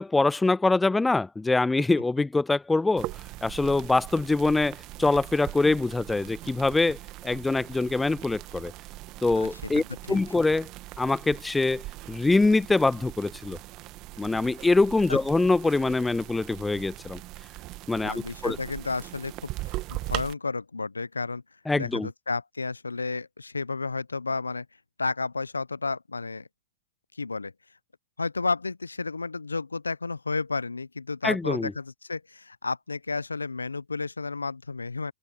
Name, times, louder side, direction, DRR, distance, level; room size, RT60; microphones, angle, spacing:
voice 1, 0.0-3.1 3.4-7.0 7.2-8.7 9.2-10.7 11.0-13.6 14.2-17.2 17.9-18.6 21.7-22.1 31.2-31.7, left 3 dB, 10° left, 0.3 m, -24 dB
sound 1, 3.0-20.3, right 19 dB, 40° right, 1.7 m, -40 dB
voice 2, 9.4-10.2 15.1-15.2 18.0-19.5 19.9-21.4 21.8-24.6 25.0-26.5 27.2-27.5 28.2-35.1, left 3 dB, 90° left, 0.9 m, -32 dB
open air
figure-of-eight pair, 100°, 0 cm